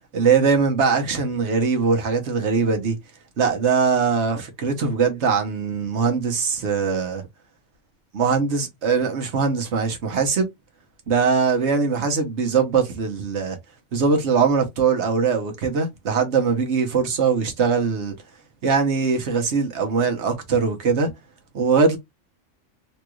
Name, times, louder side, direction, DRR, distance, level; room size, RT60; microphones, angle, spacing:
voice 1, 0.1-3.0 3.4-7.3 8.1-10.5 11.1-13.6 13.9-18.1 18.6-21.1 21.5-22.0, right 5 dB, 65° right, 1.3 m, -21 dB
3.1 x 3.1 x 2.3 m
omnidirectional pair, 1.3 m